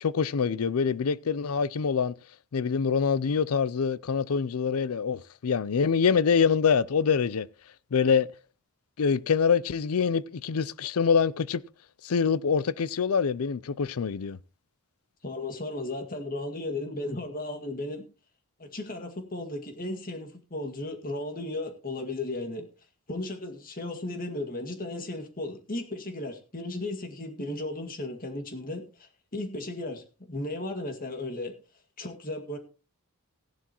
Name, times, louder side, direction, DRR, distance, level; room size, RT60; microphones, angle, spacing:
voice 1, 0.0-2.1 2.5-7.5 7.9-8.3 9.0-11.6 12.0-14.4, left 6 dB, 70° left, 0.5 m, -25 dB
voice 2, 15.2-18.1 18.6-22.7 23.1-31.5 32.0-32.6, left 2 dB, 40° left, 2.0 m, -35 dB
15.5 x 11.0 x 3.0 m
head